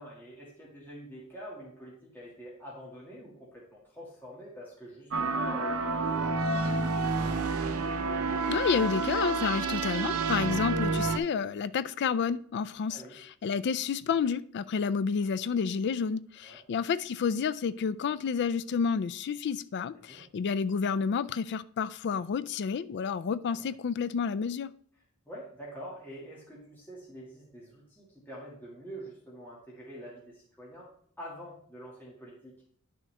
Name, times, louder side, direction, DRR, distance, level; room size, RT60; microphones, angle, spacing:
voice 1, 0.0-7.2 12.9-13.2 16.4-16.6 19.9-20.3 23.5-23.7 25.3-32.5, equal, 10° left, 2.0 m, -46 dB
sound 1, 5.1-11.2, right 3 dB, 90° right, 0.7 m, -29 dB
voice 2, 8.5-13.0 13.4-24.7, left 6 dB, 55° left, 0.4 m, -30 dB
10.5 x 6.2 x 3.3 m
head